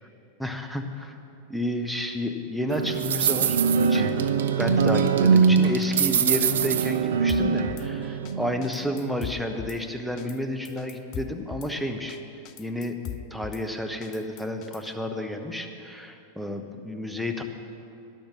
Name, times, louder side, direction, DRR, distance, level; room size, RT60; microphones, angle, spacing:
voice 1, 0.4-1.2 1.5-3.6 3.9-4.1 4.6-12.2 12.6-13.0 13.3-17.4, left 1 dB, ahead, 5 dB, 0.9 m, -31 dB
sound 1, 2.7-8.5, right 6 dB, 65° right, 0.6 m, -22 dB
Drum kit / Snare drum, 7.3-7.9 8.2-8.3 8.6-9.8 10.2-10.4 10.6-11.7 12.1-12.2 12.4-13.6 14.0-14.9, left 10 dB, 40° left, 0.5 m, -39 dB
12.0 x 10.5 x 6.2 m, 2.7 s
figure-of-eight pair, 90°, 0 cm